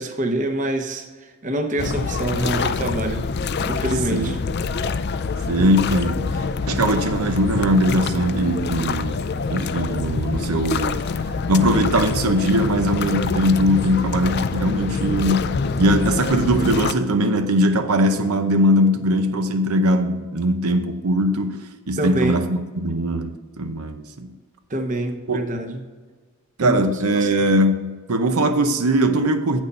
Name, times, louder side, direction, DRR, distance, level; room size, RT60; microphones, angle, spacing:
voice 1, 0.0-3.3 3.7-4.4 22.0-22.4 24.7-25.8 26.6-26.9 27.1-27.3, right 1 dB, 35° right, 0.8 m, -25 dB
sound 1, 1.8-16.9, left 4 dB, 50° left, 0.4 m, -25 dB
voice 2, 5.5-11.0 11.5-24.3 25.3-25.4 26.6-29.6, equal, 90° right, 0.8 m, -20 dB
8.7 x 6.3 x 5.3 m
head